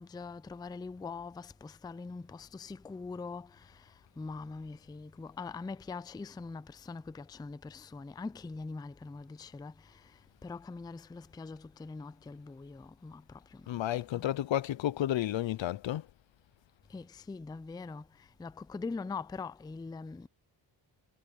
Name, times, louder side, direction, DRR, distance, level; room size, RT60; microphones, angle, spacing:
voice 1, 0.0-14.3 16.9-20.3, left 4 dB, 10° left, 0.3 m, -43 dB
voice 2, 13.7-16.1, left 12 dB, 75° left, 0.6 m, -31 dB
wide cardioid pair, 165°, 46 cm